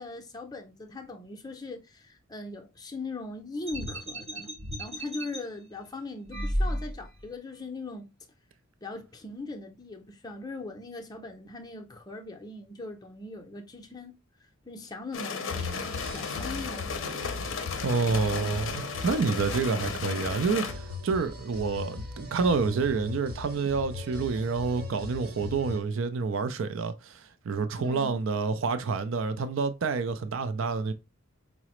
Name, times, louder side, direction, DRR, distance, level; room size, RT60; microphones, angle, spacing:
voice 1, 0.0-4.5 4.8-8.1 8.8-14.2 14.6-17.2 27.8-28.2, left 3 dB, 20° left, 0.6 m, -40 dB
sound 1, 3.7-5.4 6.3-7.2, equal, 30° right, 0.7 m, -32 dB
sound 2, 15.1-20.7, left 5 dB, 65° left, 0.5 m, -35 dB
sound 3, 15.5-25.8, left 3 dB, 50° right, 1.0 m, -39 dB
voice 2, 17.8-30.9, right 4 dB, 70° right, 0.4 m, -28 dB
4.8 x 2.0 x 2.9 m
head